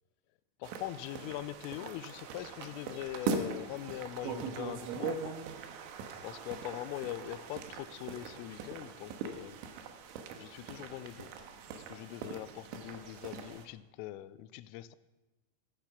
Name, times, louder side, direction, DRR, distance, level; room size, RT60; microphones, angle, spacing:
voice 1, 0.6-5.4 6.2-9.6 10.4-11.3 11.7-15.0, left 14 dB, 90° left, 15 dB, 3.2 m, -42 dB
sound 1, 0.6-13.6, right 6 dB, 75° right, 3.4 m, -41 dB
14.0 x 13.5 x 5.9 m, 1.1 s
omnidirectional pair, 5.7 m